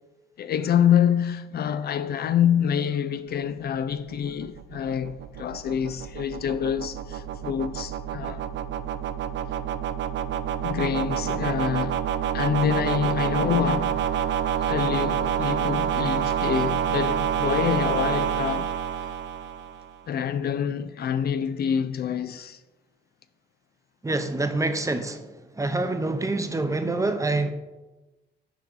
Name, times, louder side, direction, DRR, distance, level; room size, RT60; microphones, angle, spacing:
voice 1, 0.4-8.5 10.6-12.0 12.3-14.0 14.6-18.7 19.0-19.1 20.1-22.6, left 8 dB, 55° left, 0.4 m, -26 dB
sound 1, 3.8-20.0, right 9 dB, 65° right, 0.4 m, -28 dB
voice 2, 24.0-25.3 25.6-27.5, right 2 dB, 15° right, 0.7 m, -26 dB
6.1 x 4.6 x 5.5 m
cardioid pair, 90°, 20 cm